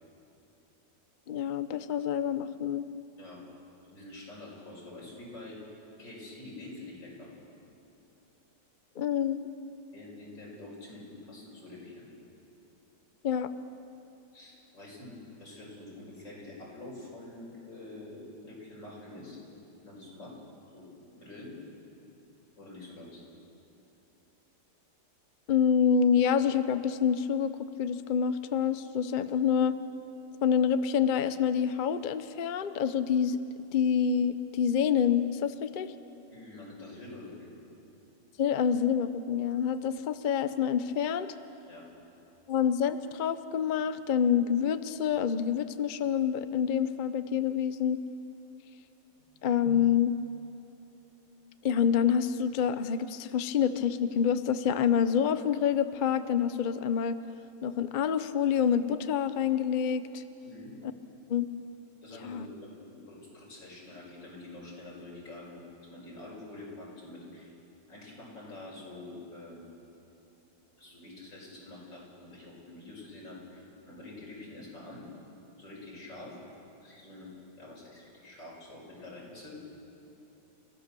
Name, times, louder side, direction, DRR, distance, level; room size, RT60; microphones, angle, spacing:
voice 1, 1.3-2.8 9.0-9.4 13.2-13.5 25.5-29.8 30.4-33.4 33.7-35.9 38.4-41.3 42.5-48.0 49.4-50.1 51.6-57.2 57.6-60.2 61.3-61.5 62.2-62.5, left 8 dB, 65° left, 12 dB, 0.4 m, -27 dB
voice 2, 3.9-7.3 9.9-12.1 14.3-19.4 19.8-20.3 20.7-20.9 21.1-21.5 22.6-23.2 36.3-37.5 41.7-41.8 49.2-49.5 60.4-60.7 62.0-65.6 65.8-67.5 67.9-69.7 70.8-75.0 75.6-76.3 76.8-77.3 77.6-79.6, left 2 dB, 85° left, -4 dB, 6.5 m, -46 dB
30.0 x 15.0 x 6.9 m, 3.0 s
omnidirectional pair, 1.9 m